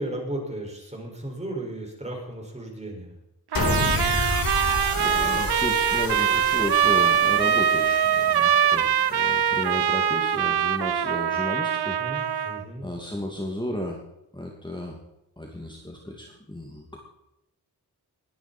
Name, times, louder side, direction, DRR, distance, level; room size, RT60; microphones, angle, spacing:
voice 1, 0.0-3.1 12.0-12.9, right 1 dB, 15° right, 0 dB, 5.7 m, -35 dB
sound 1, 3.5-9.9, left 3 dB, 60° left, 4.1 m, -31 dB
Trumpet, 3.5-12.6, right 9 dB, 75° right, 0.8 m, -23 dB
voice 2, 5.0-12.5 12.8-14.0 14.3-15.0 15.4-17.0, left 1 dB, 10° left, 0 dB, 2.5 m, -34 dB
21.5 x 10.5 x 4.4 m, 0.86 s
wide cardioid pair, 75°, 39 cm